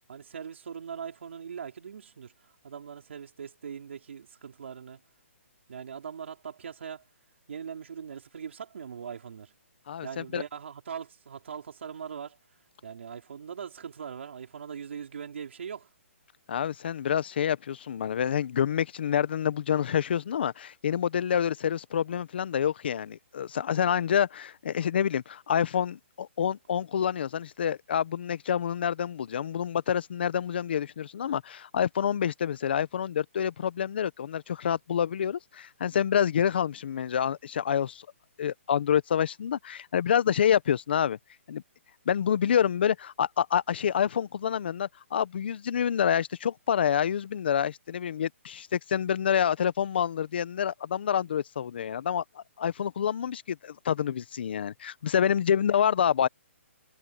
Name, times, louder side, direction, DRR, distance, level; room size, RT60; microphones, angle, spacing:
voice 1, 0.1-5.0 5.7-7.0 7.5-9.5 10.0-12.4 12.8-15.9, right 7 dB, 60° right, 5.1 m, -41 dB
voice 2, 9.9-10.4 16.5-38.1 38.4-41.2 41.5-41.6 42.1-56.3, left 8 dB, 50° left, 1.0 m, -27 dB
hypercardioid pair, 165°, 7 cm